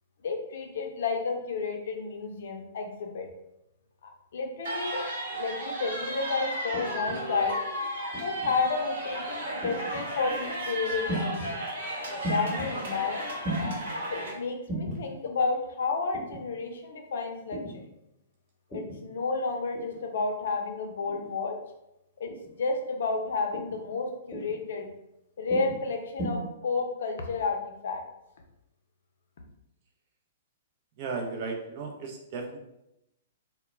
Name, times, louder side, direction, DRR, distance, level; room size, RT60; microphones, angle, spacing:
voice 1, 0.2-3.3 4.0-5.0 5.3-7.6 8.2-11.6 12.3-13.4 14.1-17.9 18.7-21.5 22.2-24.9 25.4-28.0, left 4 dB, 70° left, 3 dB, 0.5 m, -31 dB
sound 1, 4.6-14.3, right 1 dB, 70° right, 1.0 m, -34 dB
sound 2, 6.7-7.2 8.1-8.5 9.6-10.1 11.1-11.5 12.2-12.7 13.4-13.7 14.7-15.0 16.1-16.4 17.5-17.8 18.7-19.0 19.7-20.0 21.1-21.4 22.3-22.6 23.5-23.8 24.3-24.6 25.5-25.8 26.2-26.3, right 1 dB, ahead, 1.0 m, -35 dB
voice 2, 31.0-32.6, right 4 dB, 45° right, 2 dB, 0.5 m, -35 dB
2.2 x 2.1 x 3.1 m, 0.86 s
hypercardioid pair, 125°, 0 cm